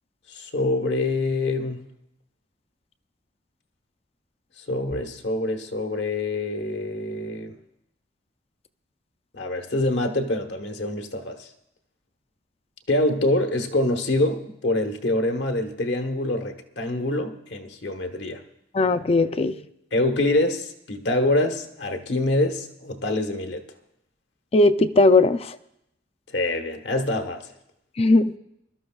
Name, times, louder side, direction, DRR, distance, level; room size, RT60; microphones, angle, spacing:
voice 1, 0.3-1.8 4.6-7.6 9.3-11.5 12.9-18.4 19.9-23.6 26.3-27.4, left 2 dB, 80° left, 1.2 m, -25 dB
voice 2, 18.7-19.6 24.5-25.6 28.0-28.4, left 2 dB, 35° left, 0.4 m, -18 dB
22.5 x 12.5 x 2.4 m
head